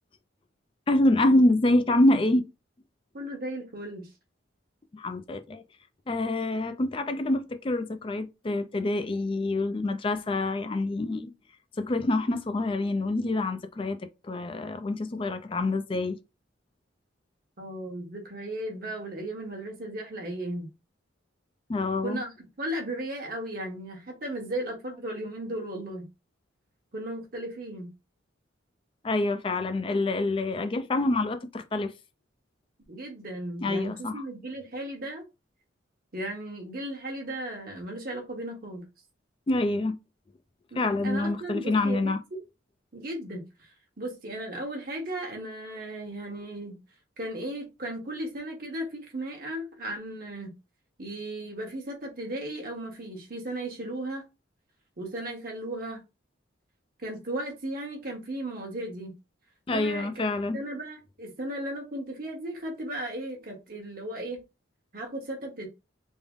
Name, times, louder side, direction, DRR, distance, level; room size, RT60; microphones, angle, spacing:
voice 1, 0.9-2.5 4.9-5.6 6.1-11.3 11.8-16.2 21.7-22.2 29.0-31.9 33.6-34.2 39.5-40.0 40.7-42.2 59.7-60.6, left 2 dB, 25° left, 0.3 m, -26 dB
voice 2, 3.1-4.1 17.6-20.7 22.0-26.1 26.9-27.9 32.9-35.2 36.1-38.9 40.7-42.4 42.9-46.8 47.2-50.5 51.0-54.2 55.0-56.0 57.0-59.1 59.7-60.2 60.5-64.4 64.9-65.7, right 1 dB, 45° right, 1.0 m, -36 dB
3.6 x 2.0 x 3.5 m
head